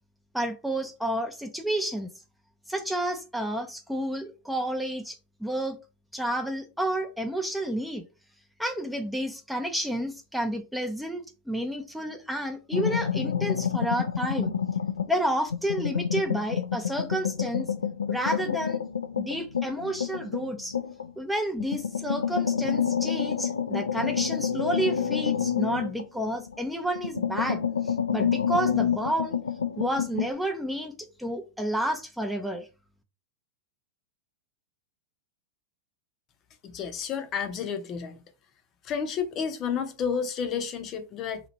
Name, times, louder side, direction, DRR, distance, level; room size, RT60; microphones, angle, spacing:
voice 1, 0.3-2.1 2.7-5.8 6.1-8.0 8.6-14.5 15.1-17.7 18.1-18.8 19.2-20.8 21.2-29.4 29.8-32.7, right 1 dB, ahead, 0.5 m, -30 dB
sound 1, 12.7-15.2 15.5-21.1 21.6-26.6 27.0-30.3, left 7 dB, 85° left, 0.4 m, -28 dB
voice 2, 36.7-38.2 38.8-41.4, left 7 dB, 35° left, 0.7 m, -31 dB
2.9 x 2.4 x 4.1 m
hypercardioid pair, 100°, 0 cm